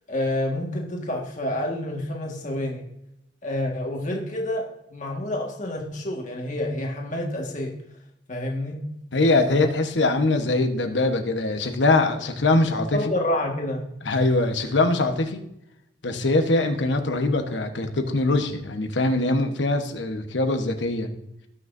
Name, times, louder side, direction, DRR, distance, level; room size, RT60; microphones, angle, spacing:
voice 1, 0.1-2.8 3.4-7.8 8.3-8.9 12.9-13.9, left 1 dB, 45° left, 0 dB, 1.7 m, -28 dB
voice 2, 9.1-13.1 14.0-15.4 16.0-21.1, left 2 dB, 90° left, 6 dB, 1.2 m, -22 dB
18.5 x 6.3 x 2.7 m, 0.83 s
head